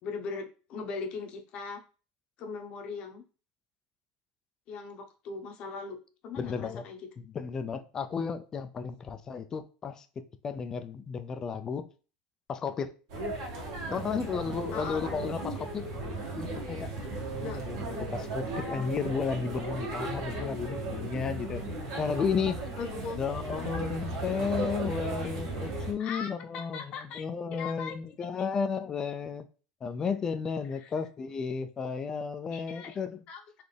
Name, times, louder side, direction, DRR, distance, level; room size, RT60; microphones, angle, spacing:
voice 1, 0.0-1.8 2.4-3.2 4.7-7.1 14.7-15.0 17.4-17.6 22.8-23.2 23.6-23.7 26.0-28.5 30.7-30.9 32.5-33.0 33.3-33.6, left 4 dB, 45° left, 0.9 m, -40 dB
voice 2, 6.4-6.8 7.2-10.1 10.4-11.9 12.5-12.9 13.9-15.9 16.4-16.9 17.3-21.6 22.0-22.7 23.2-29.4 29.8-33.2, left 6 dB, 25° left, 0.4 m, -33 dB
sound 1, 13.1-25.9, right 2 dB, 85° right, 1.9 m, -36 dB
4.1 x 3.4 x 3.4 m
supercardioid pair, 145°, 3 cm